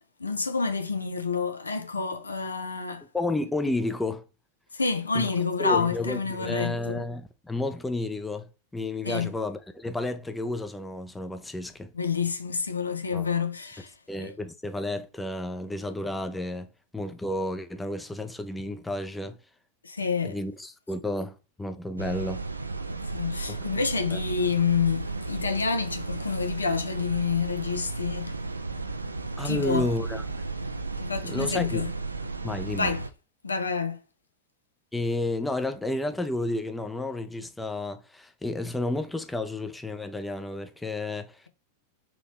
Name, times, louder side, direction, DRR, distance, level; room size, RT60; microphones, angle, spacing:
voice 1, 0.2-3.0 4.7-7.0 9.0-9.3 11.9-13.9 14.2-14.3 19.8-20.4 22.9-28.3 29.4-29.9 31.0-31.9 32.8-33.0 33.4-34.0, left 5 dB, 75° left, 0.5 m, -28 dB
voice 2, 3.1-4.2 5.1-5.3 5.6-11.9 13.1-13.3 14.1-16.7 16.9-19.4 20.2-22.4 23.5-23.7 24.1-24.2 29.4-30.2 31.2-31.8 32.4-32.9 34.9-41.5, left 2 dB, 5° left, 0.5 m, -31 dB
sound 1, 22.0-33.1, right 3 dB, 80° right, 0.3 m, -34 dB
3.9 x 2.9 x 3.0 m
figure-of-eight pair, 90°, 0 cm